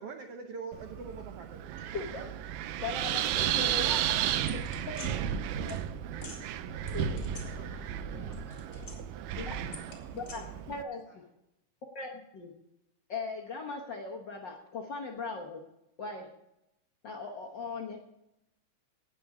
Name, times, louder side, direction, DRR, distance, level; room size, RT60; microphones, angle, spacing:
voice 1, 0.0-1.9 9.6-10.0, right 5 dB, 65° right, 5 dB, 1.5 m, -44 dB
Wind, 0.7-10.8, right 10 dB, 90° right, 2.3 m, -33 dB
voice 2, 1.8-2.2 2.8-4.2 5.0-5.2 5.7-5.8 6.9-7.1 9.4-9.5 10.1-11.2 11.9-12.5 13.1-15.6 16.0-16.3 17.0-18.0, left 4 dB, 65° left, 1 dB, 1.1 m, -39 dB
voice 3, 3.1-5.8 6.1-9.7 10.0-10.8 11.1-11.2, left 2 dB, 10° left, -2 dB, 4.6 m, -54 dB
sound 1, 4.5-5.1 5.7-5.8 6.2-6.4 6.9-8.0 8.3-9.2 9.7-10.4, left 4 dB, 35° left, 3.7 m, -47 dB
18.0 x 6.9 x 4.9 m, 0.87 s
omnidirectional pair, 3.7 m